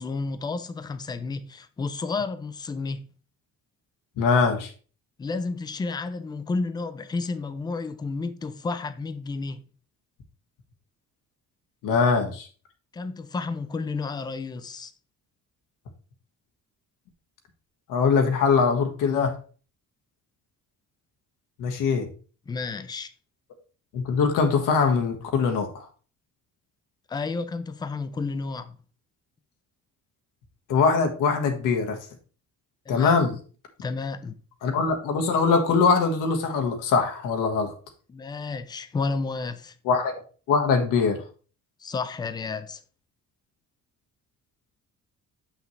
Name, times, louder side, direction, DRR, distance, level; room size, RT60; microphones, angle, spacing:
voice 1, 0.0-3.1 5.2-9.6 12.9-14.9 22.5-23.1 27.1-28.8 32.9-33.2 33.8-34.4 38.1-39.8 41.8-42.8, left 4 dB, 15° left, 0.4 m, -31 dB
voice 2, 4.2-4.7 11.8-12.5 17.9-19.3 21.6-22.1 23.9-25.9 30.7-32.0 32.9-33.3 34.6-37.7 39.8-40.1 40.5-41.2, left 5 dB, 80° left, 1.5 m, -22 dB
7.1 x 5.8 x 3.1 m
cardioid pair, 175°, 31 cm